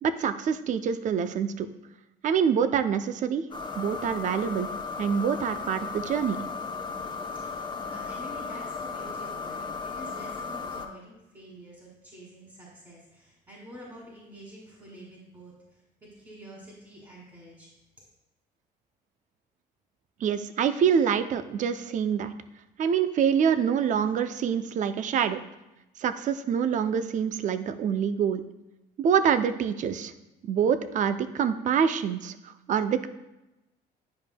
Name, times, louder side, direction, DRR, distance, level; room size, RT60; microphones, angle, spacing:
voice 1, 0.0-1.7 2.2-3.4 3.8-4.7 5.0-6.4 20.2-22.3 22.8-25.4 26.0-28.4 29.0-30.1 30.4-32.4 32.7-33.1, right 7 dB, 50° right, 11 dB, 0.5 m, -26 dB
sound 1, 3.5-10.9, left 4 dB, 25° left, 0.7 m, -35 dB
voice 2, 7.3-17.7, equal, 25° right, -4 dB, 2.1 m, -48 dB
10.0 x 5.1 x 2.2 m, 0.94 s
cardioid pair, 110°, 17 cm